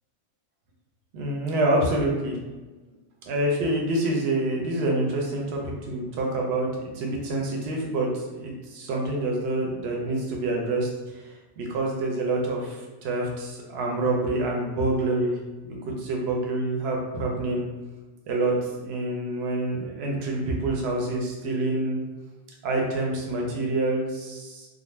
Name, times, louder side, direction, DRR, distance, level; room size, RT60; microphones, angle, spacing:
voice 1, 1.1-2.4 3.3-6.7 6.9-10.9 11.6-15.3 15.7-17.7 18.3-18.6 18.8-22.0 22.6-24.7, right 2 dB, 65° right, -1 dB, 0.8 m, -27 dB
2.4 x 2.1 x 3.1 m, 1.2 s
omnidirectional pair, 1.3 m